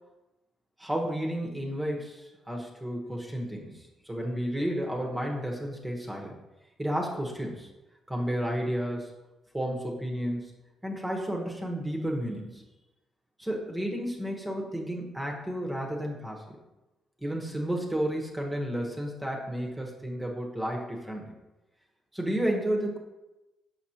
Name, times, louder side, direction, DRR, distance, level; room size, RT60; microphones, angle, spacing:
voice 1, 0.8-6.3 6.8-7.7 8.1-9.1 9.5-10.5 10.8-12.6 13.4-16.6 17.2-21.3 22.1-23.0, equal, 10° right, -1 dB, 1.1 m, -32 dB
5.9 x 5.9 x 2.9 m, 1.0 s
cardioid pair, 90°, 0 cm